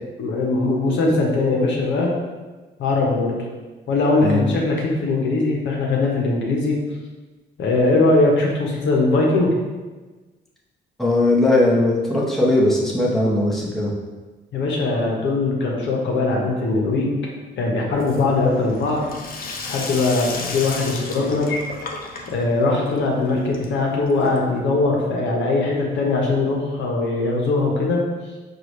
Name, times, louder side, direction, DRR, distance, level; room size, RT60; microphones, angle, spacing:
voice 1, 0.2-2.1 2.8-3.4 3.9-6.8 7.6-9.5 14.5-17.1 17.6-19.0 19.7-21.6 22.3-28.0, left 3 dB, 70° left, -1 dB, 0.9 m, -20 dB
voice 2, 4.2-4.5 11.0-13.9, left 1 dB, ahead, -5 dB, 0.9 m, -19 dB
Sink (filling or washing), 17.9-24.7, left 3 dB, 45° left, 0.6 m, -34 dB
4.7 x 2.4 x 3.0 m, 1.3 s
cardioid pair, 90°, 20 cm